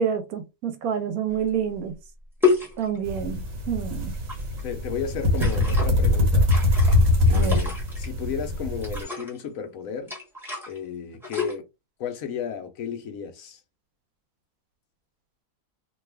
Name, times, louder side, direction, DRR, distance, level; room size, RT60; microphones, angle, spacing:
voice 1, 0.0-1.9 2.8-4.1 7.3-7.6, right 7 dB, 85° right, 1.2 m, -28 dB
sound 1, 1.5-1.6 2.4-3.2 4.1-4.6 5.3-5.9 6.4-8.1 8.8-9.4 10.1-10.8 11.1-11.6, left 5 dB, ahead, 1.0 m, -29 dB
sound 2, 3.0-9.0, left 2 dB, 70° right, 1.3 m, -22 dB
voice 2, 4.6-6.5 7.3-10.1 10.7-11.6 12.0-13.6, left 7 dB, 75° left, 1.1 m, -33 dB
2.8 x 2.3 x 3.2 m
omnidirectional pair, 1.5 m